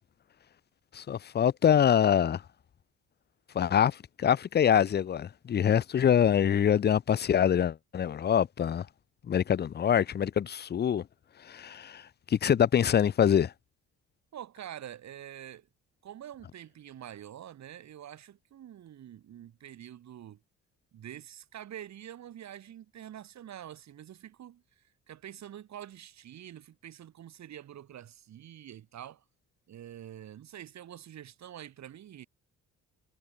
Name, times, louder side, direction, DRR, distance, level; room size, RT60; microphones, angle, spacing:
voice 1, 0.9-2.4 3.5-8.9 9.3-11.0 11.5-12.0 12.3-13.5, left 9 dB, 35° left, 0.5 m, -25 dB
voice 2, 14.3-15.7 16.0-20.4 20.9-29.2 29.7-32.3, right 11 dB, 65° right, 2.3 m, -46 dB
cardioid pair, 90°, 30 cm